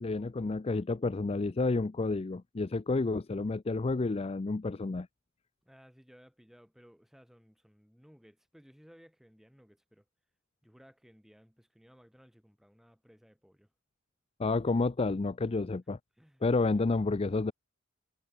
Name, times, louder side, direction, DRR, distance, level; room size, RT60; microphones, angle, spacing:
voice 1, 0.0-5.1 14.4-16.0 16.4-17.5, left 3 dB, 30° left, 0.4 m, -30 dB
voice 2, 5.6-10.1 10.6-13.7 16.2-16.4, equal, ahead, 3.2 m, -59 dB
head